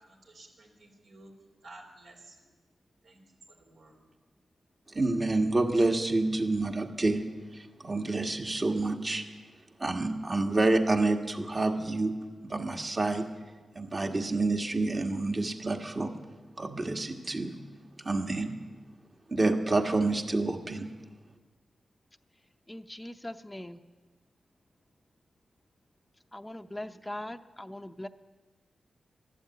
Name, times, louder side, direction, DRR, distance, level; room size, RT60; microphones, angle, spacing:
voice 1, 0.1-1.3 1.6-2.5 3.0-3.2 3.5-4.0, right 2 dB, 75° right, 0 dB, 4.5 m, -53 dB
voice 2, 4.9-9.3 9.8-13.5 13.8-16.1 16.6-17.5 18.0-18.5 19.3-20.9, right 2 dB, 40° right, 3 dB, 1.8 m, -28 dB
voice 3, 22.7-23.8 26.3-28.1, left 1 dB, 15° left, 6 dB, 0.7 m, -41 dB
14.0 x 12.0 x 8.5 m, 1.3 s
cardioid pair, 65°, 0 cm